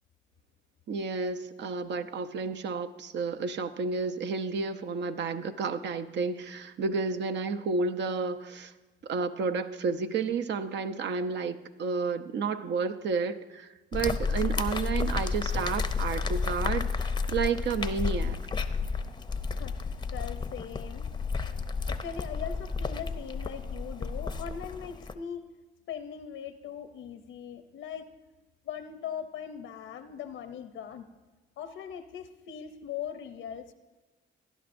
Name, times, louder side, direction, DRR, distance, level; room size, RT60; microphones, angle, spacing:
voice 1, 0.9-8.7 9.0-18.4, right 4 dB, 60° right, 9 dB, 0.6 m, -31 dB
sound 1, 13.9-25.1, left 4 dB, 20° left, 0.6 m, -32 dB
voice 2, 19.5-21.1 21.9-25.5 25.9-28.1 28.6-31.0 31.6-33.7, left 8 dB, 80° left, 10 dB, 0.6 m, -40 dB
17.5 x 11.0 x 2.6 m, 1.2 s
cardioid pair, 90°, 20 cm